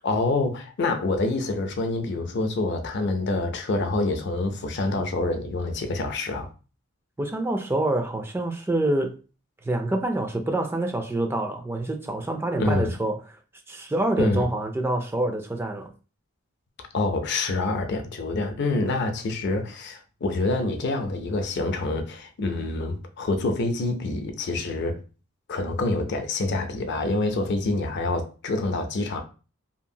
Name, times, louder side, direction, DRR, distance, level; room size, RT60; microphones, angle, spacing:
voice 1, 0.0-6.5 12.6-12.9 14.2-14.4 16.9-25.0 25.5-29.2, left 2 dB, 60° left, 0.5 m, -26 dB
voice 2, 7.2-9.2 9.6-13.2 13.7-15.9, right 1 dB, 10° right, 0.3 m, -26 dB
2.8 x 2.4 x 2.7 m
head